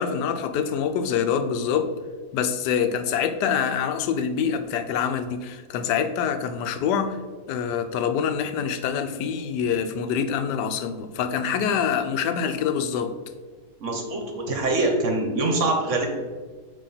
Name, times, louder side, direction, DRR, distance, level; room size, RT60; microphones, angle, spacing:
voice 1, 0.0-1.9 2.3-7.2 7.5-13.1, left 7 dB, 90° left, 8 dB, 1.2 m, -25 dB
voice 2, 13.8-16.1, right 2 dB, 55° right, 2 dB, 1.1 m, -24 dB
8.2 x 3.0 x 3.9 m, 1.4 s
omnidirectional pair, 1.8 m